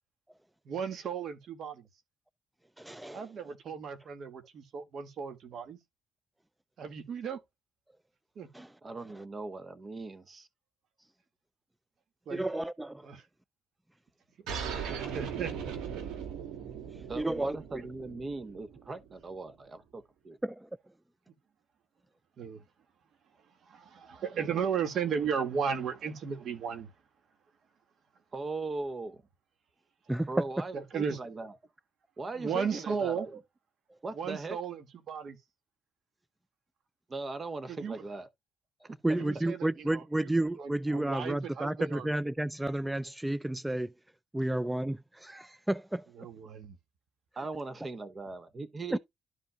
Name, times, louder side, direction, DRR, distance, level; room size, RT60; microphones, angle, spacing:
voice 1, 0.7-1.9 3.1-5.8 6.8-7.4 8.4-8.5 12.3-12.5 13.0-13.2 14.4-14.5 15.1-15.7 22.4-22.6 23.6-26.9 30.7-31.2 32.4-33.3 34.1-35.4 37.7-38.0 39.2-40.3 40.6-42.1 46.2-46.8, right 6 dB, 65° right, 1.9 m, -35 dB
voice 2, 2.8-3.2 8.5-8.7 12.3-13.1 17.2-17.8 20.4-20.7 30.1-30.3 39.0-43.9 44.3-46.1 48.9-49.0, right 1 dB, 10° right, 0.3 m, -31 dB
voice 3, 8.8-10.5 17.1-20.4 28.3-29.2 30.3-31.5 32.2-33.4 34.0-34.6 37.1-38.3 38.8-39.2 47.4-49.0, right 3 dB, 35° right, 1.0 m, -39 dB
sound 1, 14.5-19.5, right 7 dB, 90° right, 2.3 m, -39 dB
12.5 x 5.3 x 2.3 m
cardioid pair, 90°, 0 cm